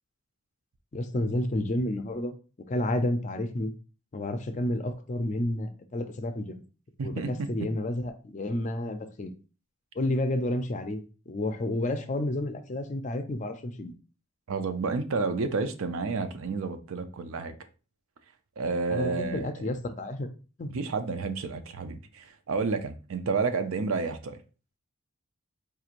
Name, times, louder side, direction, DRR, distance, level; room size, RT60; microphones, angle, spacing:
voice 1, 0.9-2.4 2.7-3.7 4.1-6.6 7.0-9.3 9.9-11.0 11.3-13.9 18.9-20.3 20.6-20.7, left 1 dB, 35° left, 0.4 m, -30 dB
voice 2, 7.0-7.3 14.5-17.5 18.6-19.7 20.7-24.4, right 4 dB, 75° right, 0.5 m, -30 dB
4.7 x 3.0 x 2.5 m
head